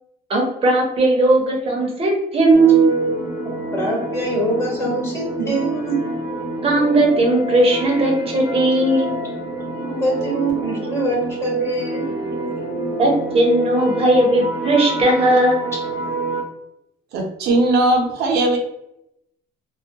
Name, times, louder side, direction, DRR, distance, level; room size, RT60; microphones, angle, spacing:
voice 1, 0.3-3.0 6.6-9.1 13.0-15.6, right 2 dB, 35° right, 0 dB, 0.7 m, -17 dB
sound 1, 2.5-16.4, right 2 dB, 80° left, 0.6 m, -27 dB
voice 2, 3.7-6.0 9.9-12.0 12.5-12.6, right 1 dB, 15° left, -3 dB, 1.1 m, -24 dB
voice 3, 17.1-18.6, right 2 dB, 75° right, 1 dB, 0.6 m, -18 dB
2.2 x 2.1 x 2.7 m, 0.83 s
cardioid pair, 110°, 17 cm